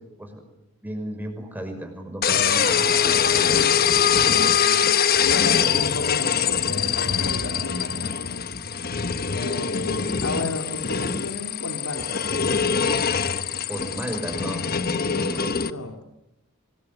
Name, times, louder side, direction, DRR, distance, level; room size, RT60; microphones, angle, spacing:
voice 1, 0.8-3.3 9.9-10.1 13.7-14.6 15.1-15.5, right 1 dB, 10° right, 4 dB, 5.8 m, -34 dB
sound 1, 2.2-15.7, left 7 dB, 45° left, 1.1 m, -23 dB
voice 2, 4.3-4.9 5.2-8.5 9.3-12.4 15.6-16.0, left 2 dB, 80° left, 4 dB, 2.7 m, -33 dB
26.0 x 21.0 x 9.7 m, 0.88 s
head